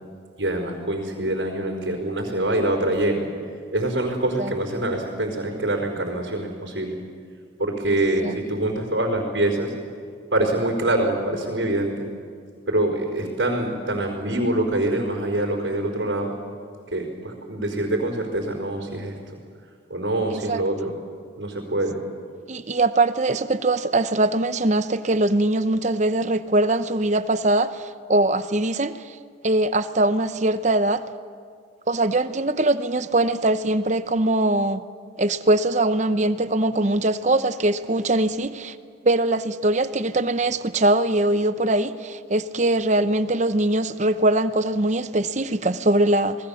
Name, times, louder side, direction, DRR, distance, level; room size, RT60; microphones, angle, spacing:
voice 1, 0.4-3.3 3.7-7.0 7.6-9.7 10.3-11.9 12.7-16.3 16.9-19.1 19.9-20.9 21.4-22.0, right 1 dB, 70° right, 0 dB, 4.6 m, -25 dB
voice 2, 20.3-20.6 22.5-28.9 29.4-31.0 31.9-34.8 35.2-38.8 39.0-46.4, right 2 dB, 35° right, 12 dB, 0.8 m, -22 dB
28.0 x 20.0 x 7.1 m, 2.1 s
head